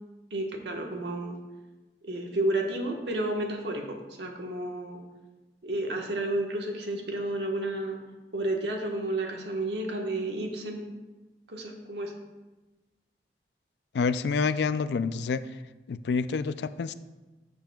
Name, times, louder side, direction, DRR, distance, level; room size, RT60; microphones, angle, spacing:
voice 1, 0.3-1.4 2.0-5.0 5.6-8.0 8.3-10.8 11.5-12.1, right 1 dB, 85° right, 1 dB, 1.3 m, -31 dB
voice 2, 13.9-15.5 15.9-16.9, left 5 dB, 80° left, 14 dB, 0.3 m, -28 dB
13.0 x 6.9 x 2.3 m, 1.1 s
head